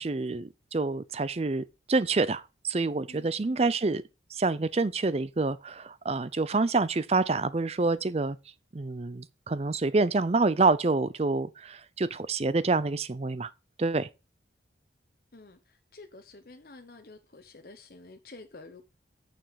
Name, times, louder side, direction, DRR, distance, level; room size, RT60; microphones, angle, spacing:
voice 1, 0.0-4.0 4.3-8.4 8.7-13.5 13.8-14.1, right 3 dB, 35° right, 0.5 m, -27 dB
voice 2, 3.1-3.6 15.3-18.9, left 3 dB, 50° left, 0.9 m, -50 dB
9.2 x 6.9 x 4.2 m
head